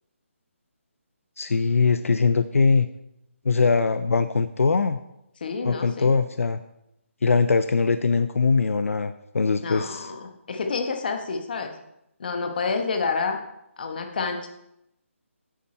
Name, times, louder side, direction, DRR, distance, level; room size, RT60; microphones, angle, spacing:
voice 1, 1.4-2.9 3.4-5.0 5.6-6.6 7.2-10.1, left 4 dB, 80° left, 11 dB, 0.5 m, -21 dB
voice 2, 5.4-6.2 9.6-11.7 12.2-13.4 13.8-14.5, left 4 dB, 40° left, 5 dB, 1.3 m, -29 dB
9.0 x 8.6 x 4.4 m, 0.84 s
hypercardioid pair, 170°, 7 cm